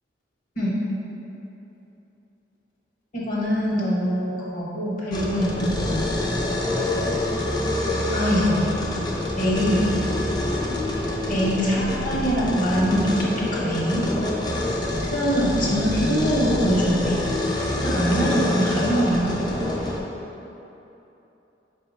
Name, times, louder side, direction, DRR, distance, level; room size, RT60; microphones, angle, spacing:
voice 1, 3.1-5.9 8.1-8.7 9.4-9.9 11.3-14.0 15.1-17.3 17.8-19.3, equal, 50° left, -6 dB, 0.9 m, -23 dB
sound 1, 5.1-20.0, left 1 dB, 25° left, 0.4 m, -26 dB
5.6 x 2.1 x 4.0 m, 3.0 s
head